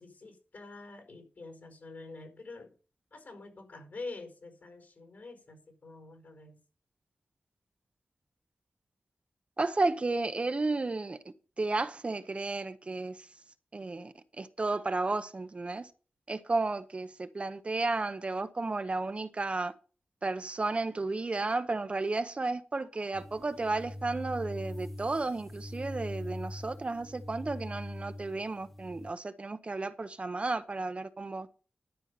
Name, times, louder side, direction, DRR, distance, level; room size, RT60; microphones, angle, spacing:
voice 1, 0.0-2.7 3.1-6.6, left 3 dB, 70° left, 4.8 m, -46 dB
voice 2, 9.6-11.2 11.6-13.3 13.7-15.9 16.3-19.7 20.2-31.5, right 3 dB, 35° right, 0.8 m, -33 dB
sound 1, 23.1-29.1, left 1 dB, 5° left, 0.7 m, -42 dB
12.0 x 5.4 x 6.9 m
wide cardioid pair, 95°, 3 cm